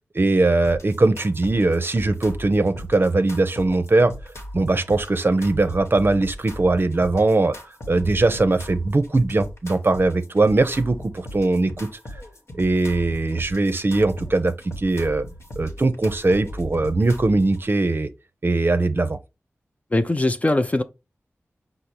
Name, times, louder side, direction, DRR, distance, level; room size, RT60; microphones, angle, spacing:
voice 1, 0.2-7.6 7.9-11.9 12.5-15.2 15.6-18.1 18.4-19.2, right 2 dB, 45° right, 0.6 m, -20 dB
sound 1, 0.6-17.6, left 1 dB, 60° left, 1.0 m, -38 dB
voice 2, 19.9-20.8, left 2 dB, 30° left, 0.5 m, -21 dB
5.1 x 2.0 x 4.3 m
cardioid pair, 40°, 5 cm